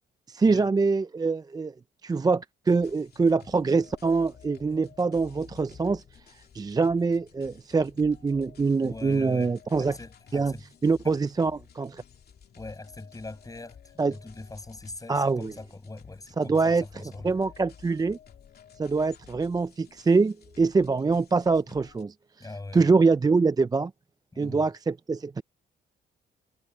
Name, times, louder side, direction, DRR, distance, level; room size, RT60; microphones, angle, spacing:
voice 1, 0.3-1.7 2.0-6.0 6.5-10.0 10.3-10.5 10.8-12.0 14.0-14.1 15.1-15.5 16.4-16.8 17.2-18.2 18.8-22.1 22.7-23.9 24.4-25.4, right 4 dB, 20° right, 0.4 m, -24 dB
sound 1, 2.7-22.0, left 7 dB, 50° left, 2.7 m, -53 dB
voice 2, 8.7-10.7 11.0-11.2 12.6-17.3 22.4-22.9 24.3-24.7, left 2 dB, 15° left, 7.3 m, -42 dB
cardioid pair, 90°, 20 cm